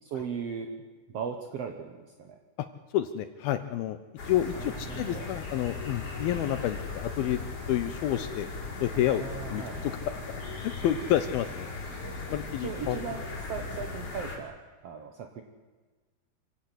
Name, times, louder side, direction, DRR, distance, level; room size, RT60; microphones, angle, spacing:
voice 1, 0.0-0.8 1.1-2.4 4.5-5.3 8.9-10.0 12.6-15.4, right 6 dB, 65° right, 4 dB, 1.5 m, -38 dB
voice 2, 2.9-4.0 4.3-7.4 7.7-8.5 8.8-9.2 9.5-9.9 10.3-11.7 12.3-13.0, left 12 dB, 75° left, 10 dB, 2.5 m, -29 dB
sound 1, 4.2-14.4, left 3 dB, 35° left, 5.7 m, -38 dB
27.0 x 17.0 x 8.0 m, 1.4 s
omnidirectional pair, 4.8 m